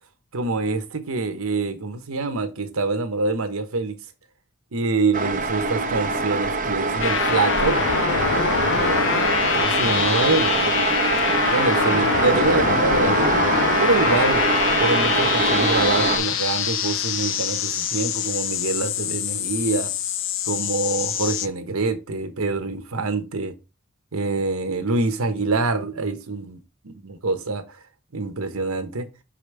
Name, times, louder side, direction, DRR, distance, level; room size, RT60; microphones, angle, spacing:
voice 1, 0.3-4.0 4.7-7.8 8.7-10.7 11.5-13.4 13.8-14.4 14.8-19.9 20.5-23.5 24.1-27.8 28.1-29.1, right 3 dB, 85° right, 1.0 m, -25 dB
sound 1, 5.1-16.2, right 3 dB, 40° right, 0.9 m, -23 dB
sound 2, 7.0-21.5, left 7 dB, 65° left, 0.6 m, -24 dB
5.8 x 4.9 x 3.4 m
head